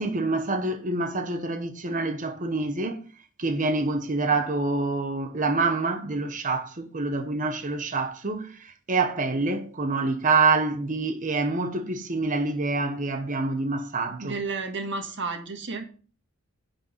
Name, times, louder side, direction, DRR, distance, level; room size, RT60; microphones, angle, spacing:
voice 1, 0.0-3.1 3.4-14.4, right 3 dB, 35° right, 1.0 m, -26 dB
voice 2, 14.2-15.8, right 3 dB, 60° right, 1.7 m, -32 dB
10.5 x 4.4 x 5.5 m
head